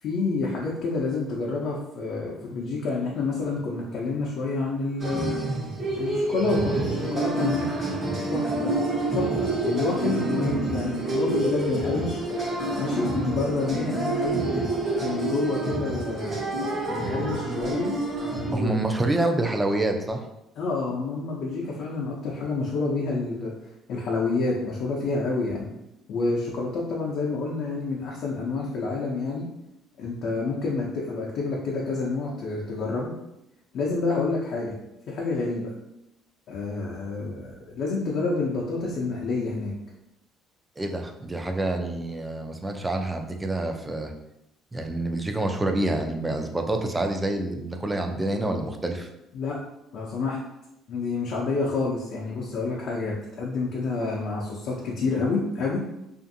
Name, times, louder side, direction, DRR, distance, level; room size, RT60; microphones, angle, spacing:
voice 1, 0.0-5.4 5.9-7.7 8.3-8.8 9.1-12.2 12.8-14.4 15.0-16.4 16.9-17.9 18.5-18.8 20.6-23.5 23.9-25.7 26.1-29.5 30.0-33.1 33.7-34.7 35.1-35.7 36.5-39.7 49.3-49.6 49.9-50.4 50.9-55.8, left 3 dB, 65° left, -3 dB, 0.5 m, -28 dB
sound 1, 5.0-18.5, right 2 dB, 35° right, 1.0 m, -27 dB
voice 2, 18.5-20.2 40.8-44.1 44.7-49.1, right 2 dB, 15° right, 4 dB, 0.4 m, -27 dB
2.5 x 2.5 x 2.6 m, 0.86 s
supercardioid pair, 85°, 0 cm